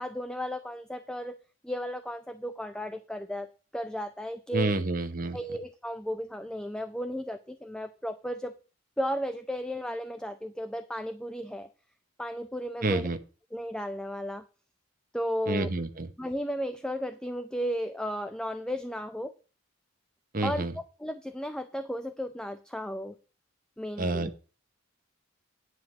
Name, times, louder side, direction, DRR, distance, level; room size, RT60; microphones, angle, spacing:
voice 1, 0.0-1.4 1.6-3.5 3.7-4.7 5.3-8.5 9.0-11.7 12.2-13.1 13.5-14.4 15.1-15.7 16.2-19.3 20.4-20.6 21.0-23.1 23.8-24.3, equal, 5° left, 10 dB, 0.4 m, -34 dB
voice 2, 4.5-5.4 12.8-13.2 15.5-16.1 20.3-20.7 24.0-24.4, right 2 dB, 45° right, 10 dB, 0.9 m, -29 dB
9.5 x 4.7 x 7.3 m, 0.36 s
head